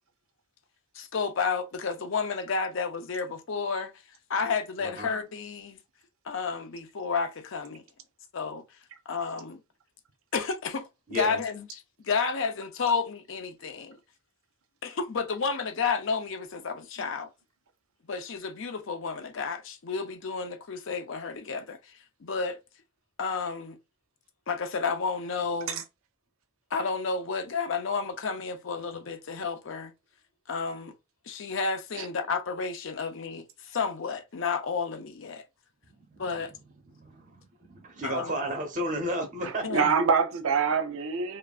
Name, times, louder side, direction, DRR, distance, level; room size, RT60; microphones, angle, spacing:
voice 1, 1.0-3.9 4.3-5.8 6.3-7.8 8.3-8.6 9.1-9.6 10.3-10.8 11.1-14.0 14.8-17.3 18.1-21.8 22.2-22.6 23.2-23.8 24.5-25.8 26.7-29.9 30.5-30.9 31.3-35.4 36.2-36.5 38.0-38.3 39.6-39.9, left 5 dB, 70° left, 0.5 m, -31 dB
voice 2, 11.1-11.4 36.1-36.2 36.9-37.3 37.7-39.8, equal, 40° right, 1.0 m, -33 dB
voice 3, 39.4-41.4, right 5 dB, 80° right, 0.5 m, -26 dB
3.1 x 2.4 x 2.3 m
head